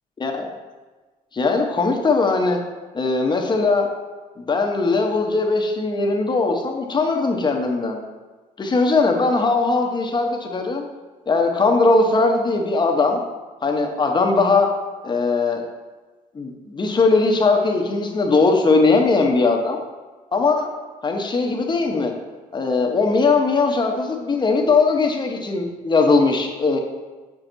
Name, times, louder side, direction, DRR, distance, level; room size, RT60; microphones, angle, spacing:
voice 1, 0.2-0.5 1.3-2.6 2.9-3.9 4.4-8.0 8.6-10.8 11.3-13.2 13.6-14.7 15.0-15.6 16.3-19.8 20.3-20.7 21.0-22.1 22.5-26.8, left 3 dB, 30° left, 2 dB, 0.9 m, -19 dB
7.0 x 6.0 x 2.7 m, 1.3 s
cardioid pair, 100°, 15 cm